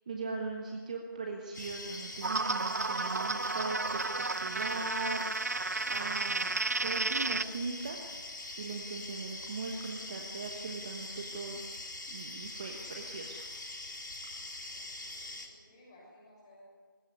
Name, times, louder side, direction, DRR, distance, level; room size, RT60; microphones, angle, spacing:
voice 1, 0.1-6.5 6.8-8.0 8.6-11.6 12.1-13.4, right 3 dB, 20° right, 2 dB, 1.2 m, -39 dB
sound 1, 1.5-15.5, left 2 dB, 60° left, 4.0 m, -43 dB
sound 2, 2.2-7.4, right 3 dB, 45° right, 0.6 m, -32 dB
voice 2, 14.7-16.6, left 1 dB, 20° left, -3 dB, 6.6 m, -59 dB
20.5 x 16.5 x 9.6 m, 1.5 s
figure-of-eight pair, 165°, 12 cm